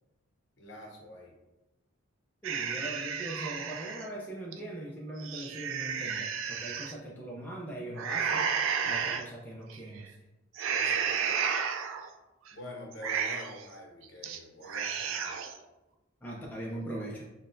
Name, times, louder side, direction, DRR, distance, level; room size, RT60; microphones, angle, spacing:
voice 1, 0.6-1.4 10.7-11.4 12.5-15.4, left 1 dB, 55° left, 0 dB, 0.7 m, -46 dB
voice 2, 2.4-8.4 8.8-10.1 16.2-17.3, right 1 dB, 10° left, -3 dB, 0.4 m, -40 dB
sound 1, 2.4-4.0 4.5-4.6 5.1-6.9 8.0-9.2 9.7-10.0 10.5-12.1 12.5-12.6 12.9-13.6 14.0-14.4 14.6-15.6, right 6 dB, 70° right, 0.3 m, -32 dB
5.5 x 2.2 x 2.5 m, 1.0 s
head